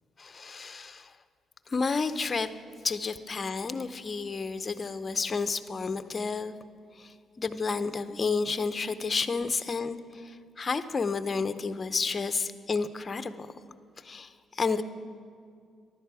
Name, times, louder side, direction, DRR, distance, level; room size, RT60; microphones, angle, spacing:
voice 1, 0.2-1.1 1.7-2.5 2.8-6.6 7.0-13.5 14.0-14.8, left 4 dB, 35° left, 11 dB, 0.6 m, -31 dB
15.5 x 11.0 x 4.8 m, 2.2 s
cardioid pair, 90°, 0 cm